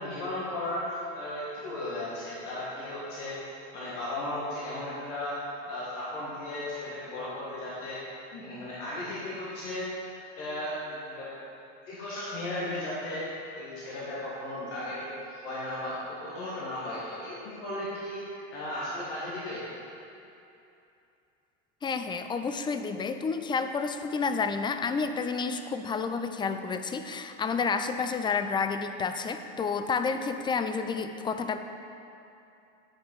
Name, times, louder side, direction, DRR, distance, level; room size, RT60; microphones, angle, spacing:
voice 1, 0.0-3.4 3.7-8.0 8.3-9.9 10.4-11.3 11.9-13.3 13.5-19.7, left 1 dB, 75° left, -8 dB, 2.1 m, -35 dB
voice 2, 21.8-31.6, left 5 dB, 15° left, 8 dB, 0.4 m, -30 dB
9.8 x 5.3 x 5.5 m, 2.7 s
hypercardioid pair, 95°, 36 cm